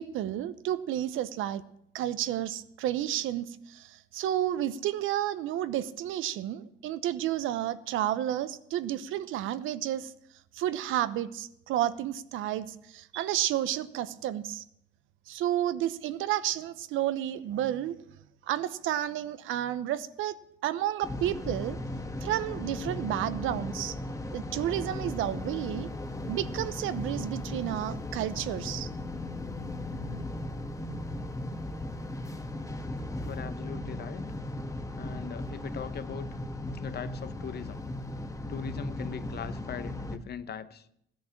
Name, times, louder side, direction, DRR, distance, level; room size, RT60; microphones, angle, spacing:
voice 1, 0.0-1.6 1.9-10.1 10.5-14.6 15.3-17.9 18.5-21.8 22.2-23.9 24.3-25.9 26.3-28.9, right 12 dB, 90° right, 14 dB, 0.9 m, -31 dB
sound 1, 21.0-40.2, left 1 dB, 15° left, 1.4 m, -37 dB
voice 2, 33.2-34.3 35.0-36.4 36.7-37.8 38.5-41.0, left 8 dB, 55° left, 13 dB, 1.0 m, -40 dB
15.5 x 10.5 x 7.2 m, 0.74 s
cardioid pair, 90°, 20 cm